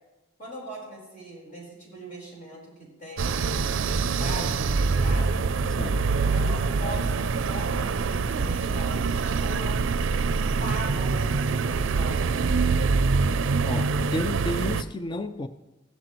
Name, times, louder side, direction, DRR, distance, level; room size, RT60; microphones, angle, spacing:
voice 1, 0.4-3.7 4.2-5.4 6.3-9.8 10.6-12.5, right 1 dB, 40° left, 4.5 m, -40 dB
sound 1, 3.2-14.8, right 4 dB, 85° right, 0.4 m, -25 dB
voice 2, 13.6-15.5, left 1 dB, 25° left, 0.4 m, -32 dB
16.0 x 11.5 x 3.1 m
head